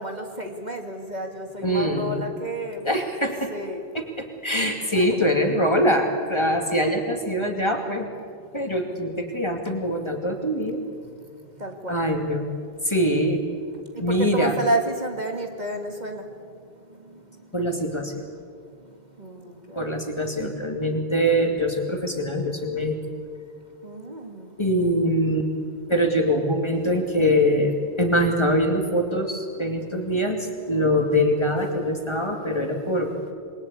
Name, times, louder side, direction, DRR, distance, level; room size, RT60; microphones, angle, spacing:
voice 1, 0.0-2.9 3.5-3.8 4.5-5.6 11.6-12.0 13.9-16.2 19.2-19.9 23.8-24.5, right 1 dB, 45° right, 3 dB, 2.2 m, -31 dB
voice 2, 1.6-2.2 2.8-3.5 3.9-8.1 8.5-10.8 11.9-12.4 12.8-13.4 14.0-14.5 17.5-18.3 19.8-23.0 24.6-25.5 25.9-33.1, equal, 25° left, 3 dB, 2.6 m, -23 dB
28.0 x 21.5 x 8.4 m, 2.2 s
omnidirectional pair, 1.1 m